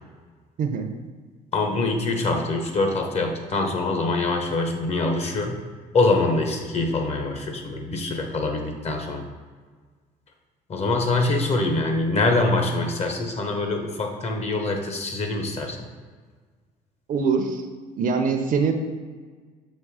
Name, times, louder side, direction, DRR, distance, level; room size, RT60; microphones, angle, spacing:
voice 1, 1.5-5.6 5.9-9.2 10.7-15.8, left 2 dB, 40° left, 3 dB, 1.0 m, -24 dB
voice 2, 17.1-17.6 18.0-18.7, right 5 dB, 55° right, 6 dB, 0.7 m, -23 dB
6.5 x 3.1 x 4.9 m, 1.5 s
cardioid pair, 110°, 17 cm